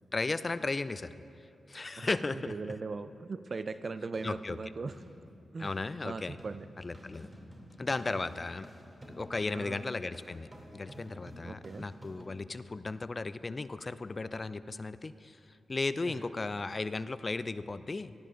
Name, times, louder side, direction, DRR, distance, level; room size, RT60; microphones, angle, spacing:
voice 1, 0.1-1.1 1.7-2.7 4.2-4.6 5.6-6.4 6.8-7.3 7.8-8.7 9.1-10.5 10.7-15.4 15.7-18.1, left 3 dB, 45° left, 14 dB, 0.4 m, -35 dB
voice 2, 2.0-5.0 5.5-5.7 6.0-6.7 8.1-8.2 9.5-9.9 11.4-11.9 16.1-16.2, right 4 dB, 55° right, 13 dB, 0.4 m, -39 dB
sound 1, 4.1-12.3, equal, 20° right, 2.4 m, -51 dB
17.5 x 12.5 x 2.5 m, 2.6 s
supercardioid pair, 40°, 0 cm